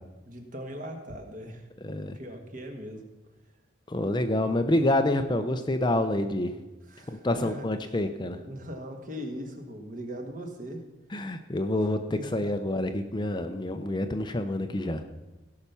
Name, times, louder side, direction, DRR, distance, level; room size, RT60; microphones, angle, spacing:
voice 1, 0.2-1.7 2.1-3.0 6.9-8.0 8.4-10.8 11.8-12.5, equal, 40° right, 4 dB, 1.7 m, -40 dB
voice 2, 1.8-2.2 3.9-6.5 7.1-8.4 11.1-15.0, left 1 dB, 20° left, 7 dB, 0.6 m, -27 dB
16.5 x 5.8 x 6.9 m, 1.1 s
head